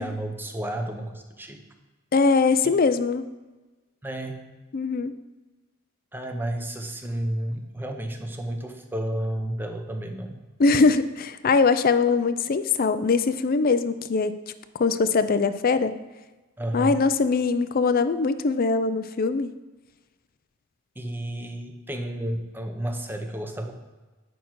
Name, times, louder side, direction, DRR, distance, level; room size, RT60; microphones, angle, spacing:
voice 1, 0.0-1.6 2.6-2.8 4.0-4.5 6.1-10.4 16.6-17.0 21.0-23.7, right 1 dB, 10° right, 4 dB, 0.8 m, -31 dB
voice 2, 2.1-3.2 4.7-5.1 10.6-14.4 14.7-15.9 16.7-19.5, left 4 dB, 45° left, 12 dB, 0.4 m, -22 dB
9.4 x 5.9 x 4.6 m, 1.2 s
head